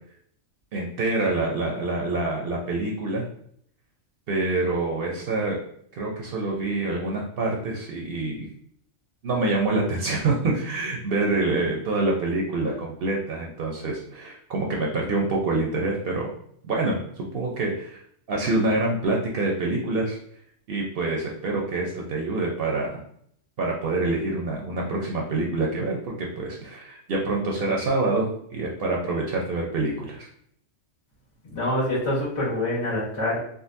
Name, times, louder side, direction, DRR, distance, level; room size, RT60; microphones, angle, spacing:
voice 1, 0.7-3.2 4.3-5.6 5.9-8.5 9.2-16.3 16.6-17.0 17.3-18.0 18.3-20.2 20.7-23.0 23.6-26.0 26.4-30.3, right 2 dB, 60° right, -1 dB, 0.7 m, -26 dB
voice 2, 31.5-33.4, left 1 dB, 70° left, -6 dB, 1.6 m, -25 dB
3.7 x 2.2 x 2.5 m, 0.65 s
omnidirectional pair, 1.3 m